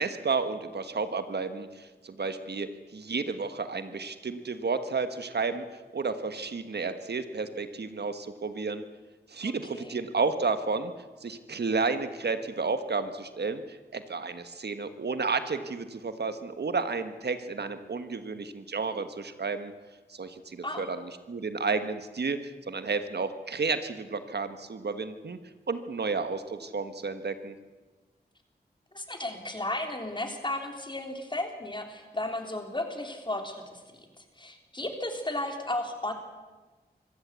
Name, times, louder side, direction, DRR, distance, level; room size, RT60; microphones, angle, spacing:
voice 1, 0.0-5.6 5.9-8.8 9.3-10.9 11.2-19.7 20.1-25.4 25.7-27.5, right 4 dB, 75° right, 10 dB, 1.4 m, -32 dB
voice 2, 9.4-10.0 20.6-20.9 28.9-34.1 34.4-36.1, left 1 dB, 25° left, 4 dB, 3.5 m, -34 dB
24.5 x 15.0 x 8.2 m, 1.3 s
wide cardioid pair, 65°, 17 cm